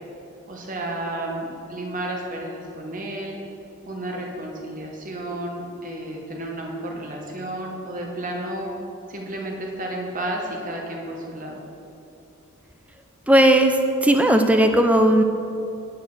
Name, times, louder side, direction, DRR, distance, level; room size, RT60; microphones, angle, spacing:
voice 1, 0.5-3.4 3.8-8.7 9.1-11.6, right 1 dB, 40° right, 0 dB, 1.2 m, -32 dB
voice 2, 13.3-15.2, right 1 dB, 5° right, 5 dB, 0.4 m, -16 dB
9.1 x 4.5 x 6.5 m, 2.7 s
head